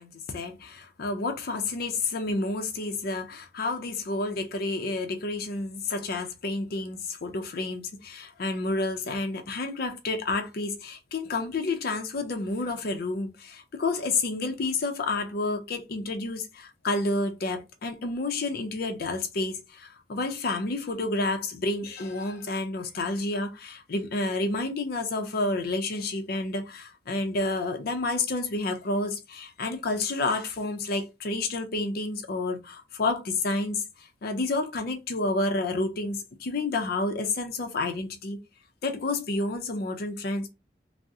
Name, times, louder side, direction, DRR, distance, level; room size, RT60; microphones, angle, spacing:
voice 1, 0.0-33.8 34.2-38.4 38.8-40.5, left 2 dB, 60° left, 0.5 m, -30 dB
3.5 x 2.0 x 2.6 m
head